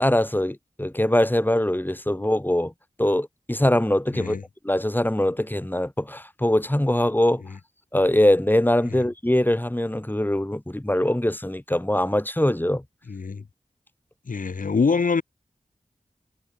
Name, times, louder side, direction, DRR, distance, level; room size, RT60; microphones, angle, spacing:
voice 1, 0.0-2.7 3.0-4.3 4.6-7.4 7.9-12.8, left 1 dB, 15° left, 3.2 m, -22 dB
voice 2, 13.1-13.4 14.3-15.2, left 5 dB, 80° left, 1.4 m, -24 dB
wide cardioid pair, 50°, 14 cm